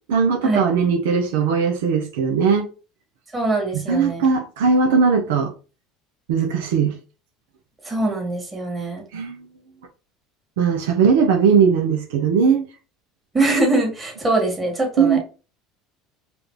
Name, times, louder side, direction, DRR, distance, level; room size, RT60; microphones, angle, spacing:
voice 1, 0.1-2.7 3.7-5.5 6.3-7.0 9.1-9.5 10.6-12.7 15.0-15.2, right 6 dB, 85° right, 0.7 m, -19 dB
voice 2, 3.3-4.2 7.8-9.0 13.3-15.2, right 2 dB, 20° right, 1.9 m, -22 dB
4.9 x 2.7 x 3.2 m
supercardioid pair, 105°, 0 cm